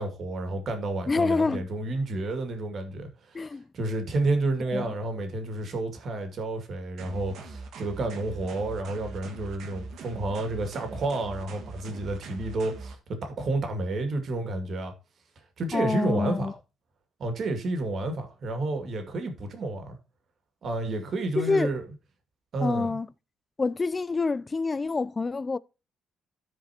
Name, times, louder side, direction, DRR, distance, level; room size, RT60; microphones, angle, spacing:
voice 1, 0.0-14.9 15.6-16.5 17.2-20.0 20.6-21.8 22.5-22.9, right 2 dB, 55° right, 2.1 m, -30 dB
voice 2, 1.1-1.7 3.3-3.7 4.7-4.9 15.7-16.5 21.4-21.7 22.6-23.1 23.6-25.6, left 3 dB, 30° left, 0.3 m, -27 dB
sound 1, 7.0-13.0, right 4 dB, 75° right, 1.6 m, -42 dB
13.5 x 4.8 x 2.8 m
cardioid pair, 90°, 0 cm